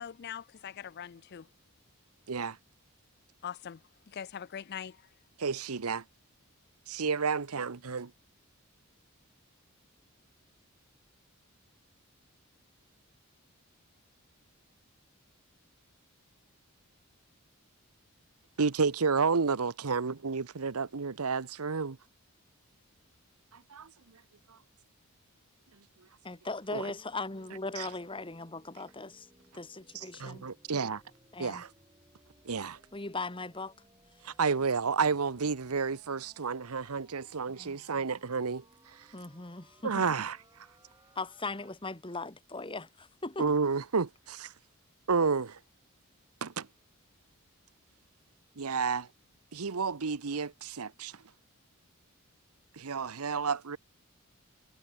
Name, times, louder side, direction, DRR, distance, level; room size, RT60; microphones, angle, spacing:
voice 1, 0.0-1.5 3.4-3.8 4.1-5.0, left 8 dB, 50° left, 0.4 m, -41 dB
voice 2, 5.4-6.0 6.9-8.1 18.6-22.0 23.7-23.9 26.7-26.8 27.8-27.9 29.9-31.0 31.4-31.7 32.4-32.8 34.2-38.6 39.8-40.4 43.4-44.5 45.1-45.6 46.4-46.7 48.6-49.1 49.5-51.1 52.8-53.8, right 5 dB, 90° right, 0.9 m, -31 dB
voice 3, 26.2-29.3 29.5-30.5 31.3-31.6 32.9-33.7 37.6-38.1 39.1-40.0 41.2-43.5, left 3 dB, 25° left, 1.8 m, -39 dB
sound 1, 26.7-41.7, right 1 dB, 15° right, 4.8 m, -64 dB
head